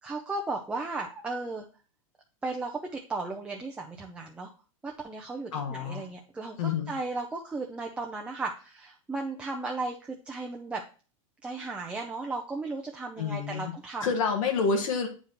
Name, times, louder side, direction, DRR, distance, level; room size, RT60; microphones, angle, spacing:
voice 1, 0.0-1.6 2.4-4.5 4.8-10.8 11.4-14.1, right 3 dB, 5° right, 1 dB, 0.6 m, -35 dB
voice 2, 5.5-6.1 6.6-6.9 13.2-13.7 14.0-15.1, left 5 dB, 70° left, 3 dB, 1.5 m, -28 dB
8.8 x 4.8 x 3.0 m, 0.36 s
supercardioid pair, 145°, 18 cm